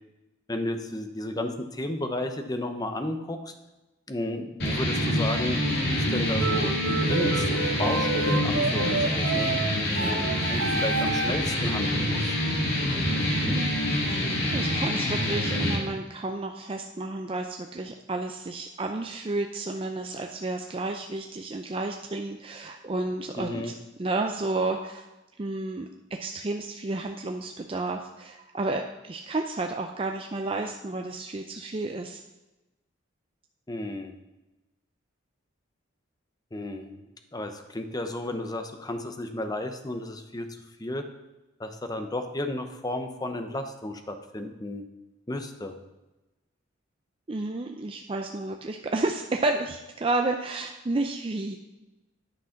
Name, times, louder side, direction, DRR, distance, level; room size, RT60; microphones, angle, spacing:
voice 1, 0.5-3.5 4.1-5.6 6.0-9.5 10.0-12.3 23.4-23.7 33.7-34.1 36.5-37.0 37.3-41.0 41.6-44.8 45.3-45.8, left 1 dB, 20° left, 7 dB, 0.8 m, -33 dB
sound 1, 4.6-15.8, equal, 55° left, 2.3 m, -26 dB
sound 2, 6.4-11.5, right 3 dB, 85° right, 0.9 m, -30 dB
voice 2, 14.1-23.7 24.0-25.1 25.4-25.9 26.2-32.2 47.3-51.6, right 2 dB, 30° right, 4 dB, 0.5 m, -31 dB
10.0 x 6.2 x 5.8 m, 1.0 s
head